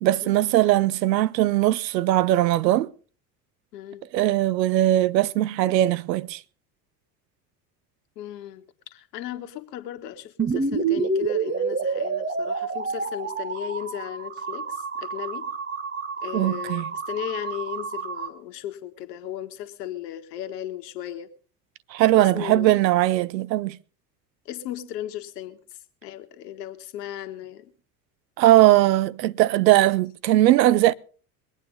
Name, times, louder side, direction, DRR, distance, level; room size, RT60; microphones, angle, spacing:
voice 1, 0.0-2.9 4.1-6.4 16.3-16.9 21.9-23.8 28.4-30.9, right 15 dB, 80° right, 0.7 m, -20 dB
voice 2, 3.7-4.0 8.2-15.5 16.2-21.3 22.2-22.7 24.5-25.6 26.0-27.7, left 11 dB, 70° left, 1.8 m, -36 dB
sound 1, 10.4-18.3, right 4 dB, 25° right, 1.7 m, -28 dB
22.0 x 9.0 x 5.3 m
hypercardioid pair, 70°, 50 cm